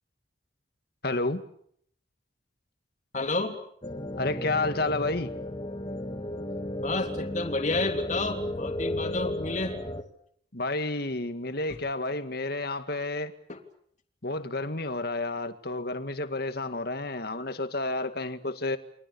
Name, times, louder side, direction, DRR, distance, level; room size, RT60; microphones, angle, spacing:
voice 1, 1.0-1.4 4.1-5.3 10.5-13.3 14.2-18.8, left 2 dB, 60° left, 2.0 m, -30 dB
voice 2, 3.1-3.6 6.8-9.8 13.5-13.6, left 2 dB, 40° left, 3.3 m, -30 dB
sound 1, 3.8-10.0, left 1 dB, 25° left, 2.2 m, -34 dB
29.5 x 24.0 x 7.1 m
head